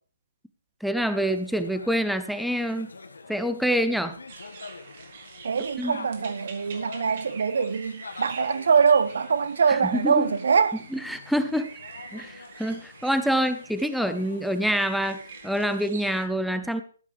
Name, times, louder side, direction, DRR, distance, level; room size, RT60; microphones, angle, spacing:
voice 1, 0.8-2.9 3.3-4.2 5.8-6.0 9.7-10.3 10.9-11.7 12.1-16.8, equal, ahead, 0.7 m, -26 dB
sound 1, 1.1-16.2, left 4 dB, 75° left, 1.7 m, -45 dB
sound 2, 4.3-16.3, right 5 dB, 45° right, 1.9 m, -46 dB
voice 2, 5.4-10.8, right 6 dB, 65° right, 0.8 m, -23 dB
13.5 x 12.0 x 3.4 m
figure-of-eight pair, 140°, 0 cm